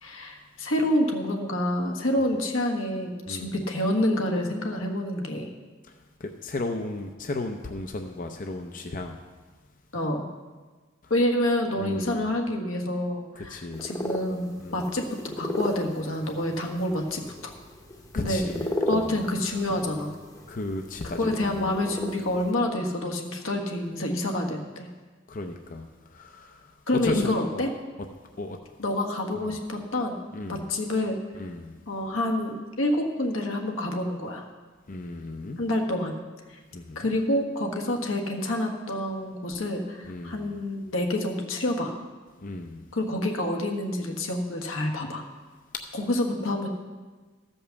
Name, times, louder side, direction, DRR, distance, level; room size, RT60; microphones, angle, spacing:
voice 1, 0.0-5.6 9.9-10.3 11.1-17.5 18.1-18.4 18.9-20.1 21.2-24.9 26.9-27.7 28.8-30.2 30.5-31.2 31.9-34.5 35.6-36.2 36.5-36.6 36.9-42.0 42.9-45.2 45.9-46.7, left 1 dB, 85° left, 2 dB, 1.5 m, -28 dB
voice 2, 5.9-9.2 11.0-11.1 11.8-12.2 13.4-13.8 14.6-14.9 18.1-19.1 20.5-21.7 25.3-27.6 28.4-28.6 29.4-29.6 30.3-30.7 31.3-31.8 34.9-35.6 36.7-37.1 40.1-40.5 42.4-42.9, left 2 dB, 40° left, 4 dB, 0.6 m, -35 dB
sound 1, 13.7-22.5, left 1 dB, 15° left, 0.8 m, -35 dB
14.0 x 5.4 x 7.0 m, 1.4 s
head